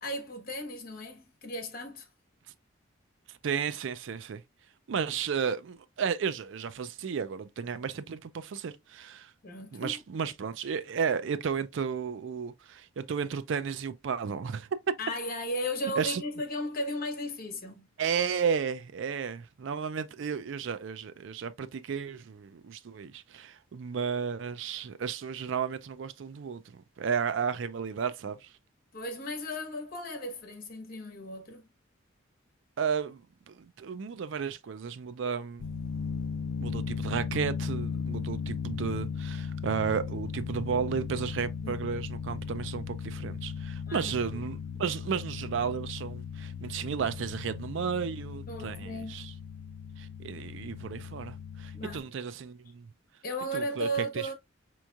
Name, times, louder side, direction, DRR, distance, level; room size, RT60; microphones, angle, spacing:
voice 1, 0.0-2.1 9.4-10.0 15.0-17.9 28.9-31.6 41.6-41.8 43.8-44.4 48.5-49.3 51.7-52.1 53.2-54.3, equal, 45° left, 1.3 m, -35 dB
voice 2, 3.4-4.4 4.9-9.3 9.7-14.7 16.0-16.2 18.0-28.5 32.8-35.7 36.6-49.3 50.0-52.9 53.5-53.9 54.1-54.3, right 6 dB, 65° right, 0.4 m, -33 dB
sound 1, 35.6-52.0, left 6 dB, 80° left, 0.4 m, -37 dB
5.2 x 3.0 x 2.3 m
head